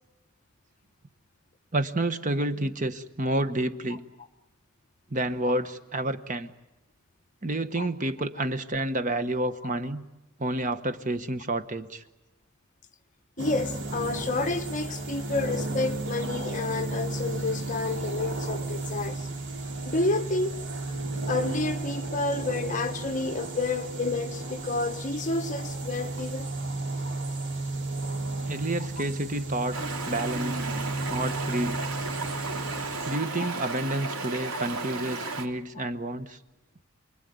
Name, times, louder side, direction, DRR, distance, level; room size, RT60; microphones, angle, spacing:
voice 1, 1.7-4.0 5.1-6.5 7.4-10.1 10.4-12.0 28.5-30.7 31.1-31.8 33.1-36.4, right 1 dB, 35° right, 1.2 m, -29 dB
voice 2, 13.4-19.3 19.8-20.6 21.3-26.5 33.4-33.5, left 3 dB, 35° left, 1.3 m, -30 dB
sound 1, 13.4-33.2, right 2 dB, 55° right, 3.9 m, -33 dB
Stream, 29.7-35.5, right 3 dB, 85° right, 2.7 m, -34 dB
29.0 x 21.0 x 9.5 m
head